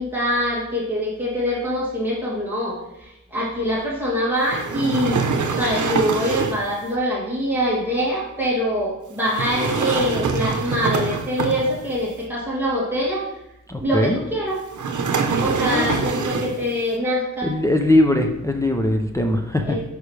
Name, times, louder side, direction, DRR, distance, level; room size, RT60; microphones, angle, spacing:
voice 1, 0.0-13.2 13.8-14.6 15.4-17.5 19.6-19.8, equal, 5° right, -7 dB, 2.4 m, -24 dB
sound 1, 4.5-6.7 9.3-12.0 14.7-16.7, right 5 dB, 80° right, 0.8 m, -24 dB
voice 2, 13.7-14.2 15.6-15.9 17.4-19.8, left 1 dB, 10° left, 2 dB, 0.5 m, -20 dB
9.7 x 5.0 x 3.2 m, 0.86 s
wide cardioid pair, 170°, 30 cm